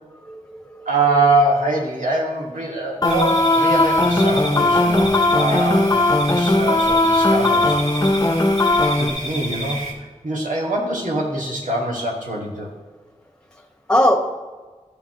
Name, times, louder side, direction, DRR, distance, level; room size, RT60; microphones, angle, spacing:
voice 1, 0.1-1.2 1.6-1.8 13.9-14.2, left 1 dB, 5° left, 4 dB, 1.4 m, -21 dB
voice 2, 0.9-7.8 9.0-9.8 10.2-12.7, right 2 dB, 85° right, -3 dB, 2.1 m, -23 dB
sound 1, 3.0-9.1, left 2 dB, 25° left, 0.9 m, -18 dB
sound 2, 3.1-9.9, equal, 60° right, 1.8 m, -31 dB
12.5 x 7.3 x 3.1 m, 1.3 s
wide cardioid pair, 50°, 13 cm